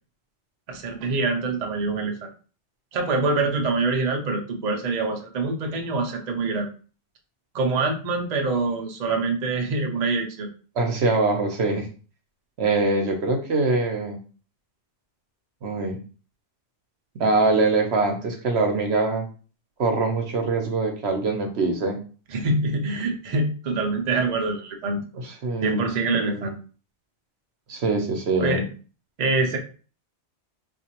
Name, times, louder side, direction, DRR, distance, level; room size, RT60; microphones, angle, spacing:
voice 1, 0.7-2.3 2.9-6.7 7.5-10.5 22.3-25.0 25.6-26.6 28.4-28.7 29.2-29.6, right 3 dB, 45° right, 3 dB, 0.6 m, -25 dB
voice 2, 10.8-11.9 12.6-14.2 15.6-16.0 17.1-19.2 19.8-22.0 25.1-25.8 26.2-26.5 27.7-28.6, right 3 dB, 70° right, 4 dB, 0.9 m, -23 dB
4.0 x 2.5 x 2.8 m, 0.38 s
omnidirectional pair, 1.2 m